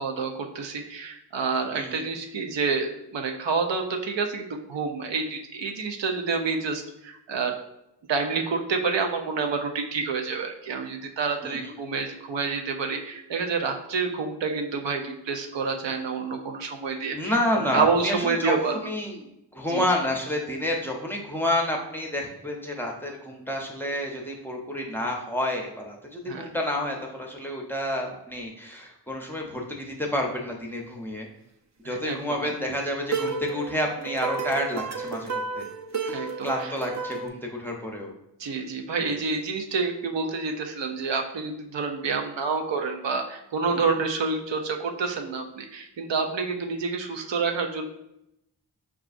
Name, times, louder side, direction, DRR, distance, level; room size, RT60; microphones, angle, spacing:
voice 1, 0.0-7.5 8.1-17.3 17.7-18.8 19.7-19.8 26.3-26.5 31.8-32.5 36.1-36.7 38.4-47.9, right 4 dB, 90° right, 4 dB, 0.6 m, -28 dB
voice 2, 1.7-2.0 11.4-11.8 17.1-31.3 31.8-35.6 36.0-38.1 39.0-39.2 43.7-43.9, left 1 dB, 5° left, 1 dB, 0.6 m, -29 dB
sound 1, 33.1-37.3, right 4 dB, 40° right, 0.5 m, -31 dB
5.7 x 2.4 x 2.5 m, 0.83 s
wide cardioid pair, 80°, 42 cm